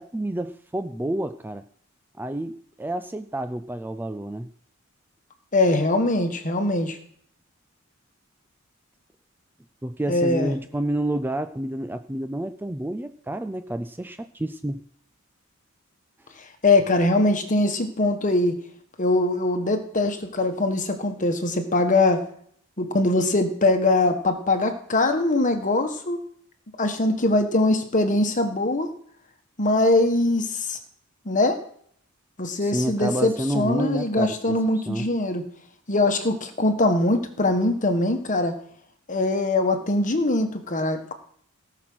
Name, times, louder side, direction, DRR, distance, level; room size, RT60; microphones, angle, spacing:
voice 1, 0.0-1.6 2.2-4.5 9.8-14.8 32.6-35.1, right 1 dB, 10° right, 10 dB, 0.4 m, -29 dB
voice 2, 5.5-7.0 10.1-10.5 16.6-18.5 19.0-22.2 22.8-26.2 26.8-28.9 29.6-30.8 31.2-31.6 32.4-35.4 35.9-38.5 39.1-41.1, left 2 dB, 40° left, 6 dB, 1.4 m, -22 dB
17.5 x 6.1 x 6.2 m, 0.63 s
head